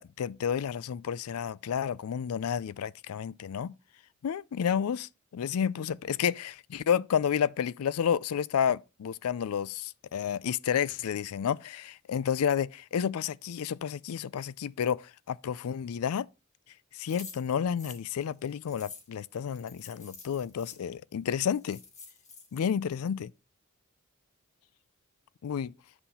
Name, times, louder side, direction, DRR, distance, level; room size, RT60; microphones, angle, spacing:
voice 1, 0.0-3.7 4.2-16.3 16.9-21.8 22.5-23.3 25.4-25.7, left 8 dB, 85° left, 0.4 m, -31 dB
sound 1, 17.1-20.8 21.3-21.4 21.6-22.7, left 5 dB, 35° left, 1.7 m, -49 dB
8.0 x 5.8 x 4.2 m
head